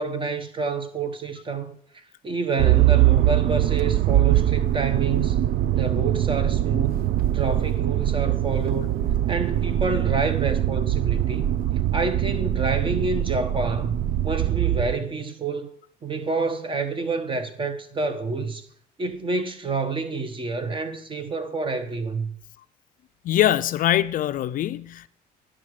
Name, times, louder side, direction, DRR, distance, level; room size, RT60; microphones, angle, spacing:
voice 1, 0.0-5.4 5.7-9.0 9.3-11.5 11.9-14.0 14.2-15.7 16.0-18.6 19.0-22.3, right 4 dB, 30° right, 1.1 m, -28 dB
Motor vehicle (road), 2.6-14.9, right 13 dB, 60° right, 0.5 m, -22 dB
voice 2, 23.2-25.1, left 12 dB, 55° left, 0.4 m, -23 dB
9.9 x 6.2 x 4.8 m
cardioid pair, 110°, 17 cm